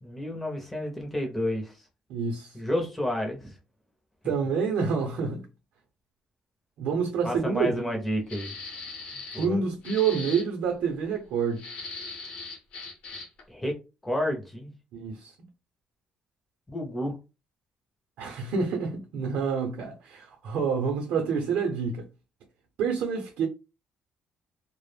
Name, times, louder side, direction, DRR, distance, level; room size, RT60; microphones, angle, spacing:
voice 1, 0.0-1.7 2.5-3.5 7.2-8.5 9.1-9.6 13.5-13.8 14.0-14.7 16.7-17.2, left 1 dB, 5° left, 0.5 m, -30 dB
voice 2, 2.1-2.6 4.2-5.4 6.8-7.9 9.4-11.6 14.9-15.3 18.2-22.0 22.8-23.5, right 5 dB, 65° right, 0.6 m, -28 dB
sound 1, 8.3-9.5 9.8-10.5 11.6-13.4, left 3 dB, 55° left, 0.7 m, -39 dB
2.1 x 2.0 x 3.1 m
cardioid pair, 180°, 2 cm